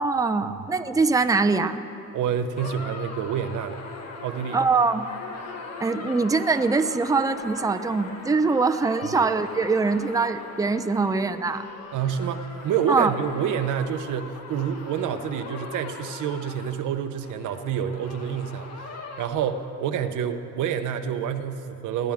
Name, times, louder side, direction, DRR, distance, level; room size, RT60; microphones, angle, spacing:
voice 1, 0.0-1.8 4.5-5.1 5.8-11.7 12.9-13.1, right 4 dB, 10° right, 8 dB, 0.6 m, -23 dB
voice 2, 2.1-3.8 4.2-4.6 11.9-22.1, right 8 dB, 85° right, 8 dB, 0.9 m, -28 dB
sound 1, 2.6-19.3, left 3 dB, 60° left, 1.8 m, -40 dB
20.5 x 15.0 x 3.6 m, 2.8 s
cardioid pair, 90°, 30 cm